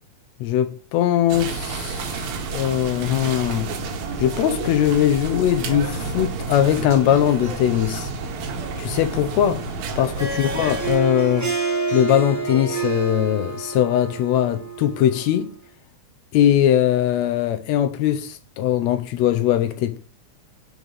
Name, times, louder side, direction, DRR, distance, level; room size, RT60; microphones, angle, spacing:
voice 1, 0.4-3.7 4.2-8.1 8.8-9.6 10.0-11.5 11.9-15.5 16.3-20.0, left 11 dB, 80° left, 1.6 m, -20 dB
sound 1, 1.3-11.0, right 4 dB, 70° right, 2.1 m, -30 dB
Harp, 10.0-15.4, right 5 dB, 20° right, 0.4 m, -28 dB
5.1 x 4.8 x 6.2 m
omnidirectional pair, 3.6 m